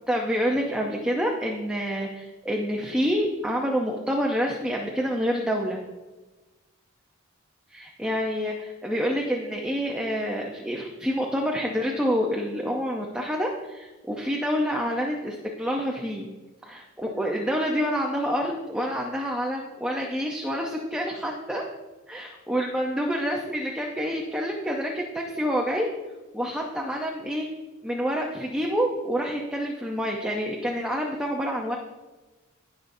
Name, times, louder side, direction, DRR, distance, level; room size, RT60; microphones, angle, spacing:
voice 1, 0.1-5.8 7.7-16.3 16.6-21.6 22.1-25.9 26.3-27.5 27.8-31.8, equal, 5° right, -1 dB, 0.7 m, -27 dB
17.0 x 5.7 x 2.7 m, 1.2 s
head